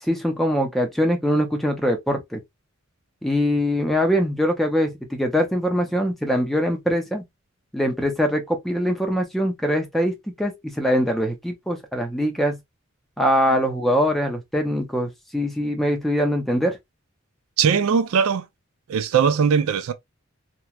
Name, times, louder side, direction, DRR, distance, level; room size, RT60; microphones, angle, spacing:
voice 1, 0.0-2.4 3.2-7.2 7.7-12.6 13.2-16.8, equal, ahead, 0.4 m, -23 dB
voice 2, 17.6-18.5 18.9-19.9, right 6 dB, 85° right, 0.4 m, -20 dB
2.9 x 2.1 x 2.2 m
head